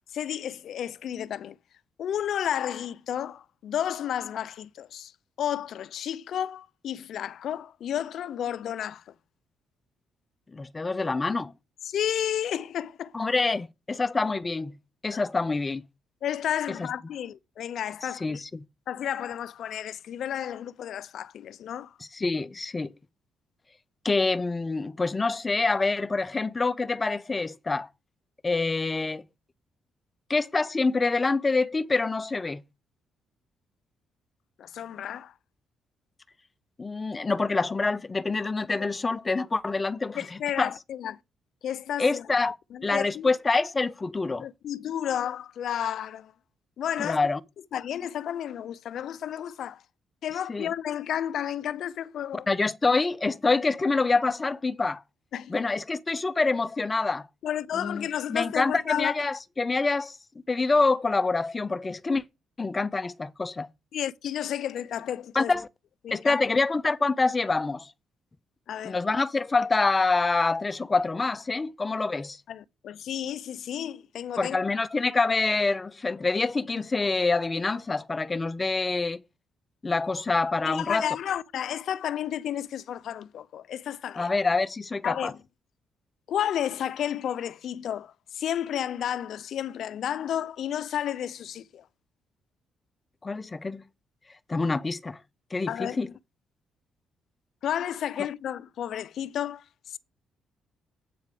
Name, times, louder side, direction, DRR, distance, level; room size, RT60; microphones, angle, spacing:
voice 1, 0.1-1.6 2.0-5.1 5.4-9.1 11.8-13.1 15.1-15.2 16.2-18.4 18.9-21.9 34.6-35.3 38.8-38.9 40.1-41.2 41.6-42.3 42.7-43.3 44.4-46.3 46.8-47.2 47.7-49.8 50.2-52.5 55.3-55.5 57.4-59.2 63.9-65.5 66.0-66.4 68.7-69.0 72.5-74.6 80.6-84.3 85.0-85.4 86.3-91.8 95.7-96.0 97.6-100.0, left 10 dB, 70° left, 0.5 m, -32 dB
voice 2, 10.5-11.5 13.1-14.7 15.0-15.8 16.8-16.9 18.2-18.6 22.1-22.9 24.0-27.9 28.4-29.2 30.3-32.6 36.8-40.7 42.0-42.6 42.8-44.5 47.0-47.4 50.5-50.7 52.5-55.0 55.5-57.3 57.7-60.2 60.5-62.2 62.6-63.7 65.3-65.7 66.1-67.9 68.8-72.4 74.4-79.2 79.8-81.2 84.1-85.3 93.2-93.8 94.5-95.2 95.5-96.1, left 3 dB, 25° left, 0.6 m, -26 dB
8.4 x 4.7 x 6.8 m
cardioid pair, 90°, 0 cm